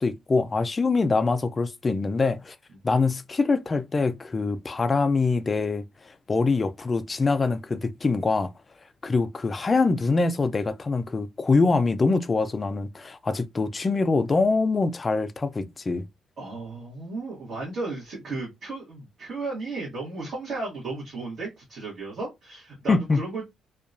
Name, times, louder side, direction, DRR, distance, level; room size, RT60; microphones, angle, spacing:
voice 1, 0.0-2.6 2.8-5.8 6.3-8.5 9.0-16.0 22.9-23.2, left 3 dB, 30° left, 0.3 m, -24 dB
voice 2, 16.4-23.4, right 3 dB, 60° right, 1.2 m, -34 dB
2.7 x 2.2 x 2.4 m
cardioid pair, 90°, 0 cm